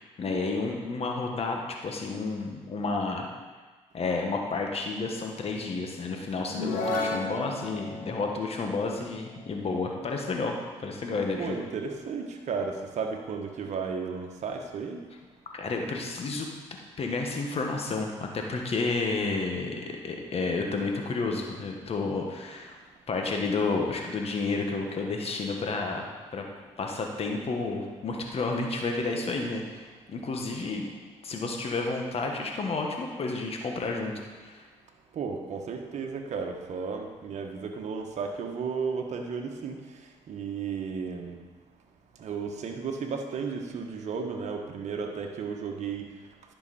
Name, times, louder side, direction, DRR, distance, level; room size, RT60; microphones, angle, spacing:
voice 1, 0.0-3.2 3.9-10.6 10.8-11.6 15.5-16.5 17.0-22.8 23.1-26.4 26.8-30.9 31.2-34.1 34.4-34.7, left 3 dB, 50° left, 2 dB, 1.5 m, -31 dB
sound 1, 6.4-10.1, left 2 dB, 85° left, 1.4 m, -34 dB
voice 2, 11.4-15.0 35.1-39.8 40.3-41.4 42.2-46.0, right 5 dB, 60° right, 3 dB, 1.2 m, -34 dB
10.5 x 5.7 x 4.3 m, 1.3 s
supercardioid pair, 60°, 13 cm